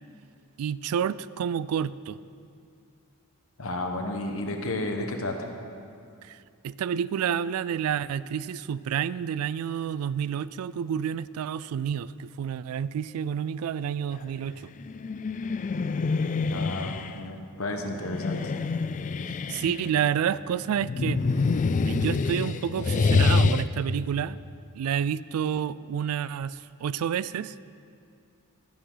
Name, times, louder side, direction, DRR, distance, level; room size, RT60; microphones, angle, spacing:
voice 1, 0.6-2.2 6.2-6.4 6.6-14.7 19.3-21.2 21.9-24.4 24.7-27.5, right 8 dB, 85° right, 19 dB, 0.3 m, -29 dB
voice 2, 3.6-5.4 16.5-18.5, left 2 dB, 70° left, 4 dB, 1.2 m, -32 dB
sound 1, 14.8-17.1 18.0-20.0 20.8-23.6, left 4 dB, 35° left, 0.3 m, -26 dB
12.5 x 11.0 x 3.9 m, 2.4 s
head